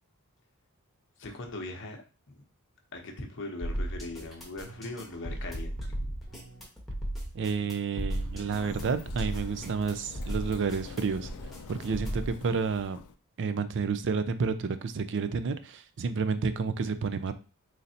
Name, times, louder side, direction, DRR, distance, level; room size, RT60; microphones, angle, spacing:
voice 1, 1.2-2.4 2.9-6.2, left 2 dB, 55° left, 3 dB, 0.8 m, -40 dB
sound 1, 3.6-12.3, right 1 dB, ahead, 1.1 m, -36 dB
voice 2, 7.3-11.3 11.7-13.0 13.4-17.3, right 5 dB, 55° right, 11 dB, 0.4 m, -30 dB
Sliding door, 8.1-13.1, left 4 dB, 75° left, 0.4 m, -45 dB
3.9 x 3.2 x 2.7 m, 0.34 s
head